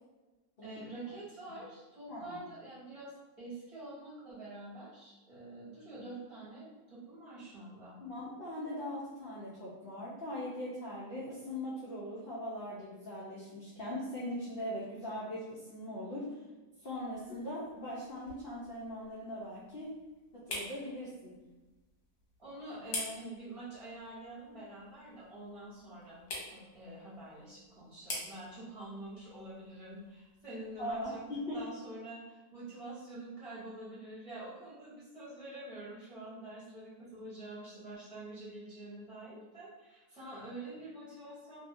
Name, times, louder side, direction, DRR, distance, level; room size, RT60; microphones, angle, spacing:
voice 1, 0.6-8.0 22.4-26.2 26.5-31.2 31.5-41.6, right 2 dB, 20° right, -10 dB, 1.2 m, -46 dB
voice 2, 2.1-2.4 8.0-16.4 16.8-19.9 20.5-21.3 30.8-31.6, left 1 dB, 55° left, -8 dB, 0.6 m, -40 dB
sound 1, 16.9-31.7, left 2 dB, 70° left, 1.3 m, -48 dB
2.8 x 2.7 x 2.6 m, 1.2 s
omnidirectional pair, 1.8 m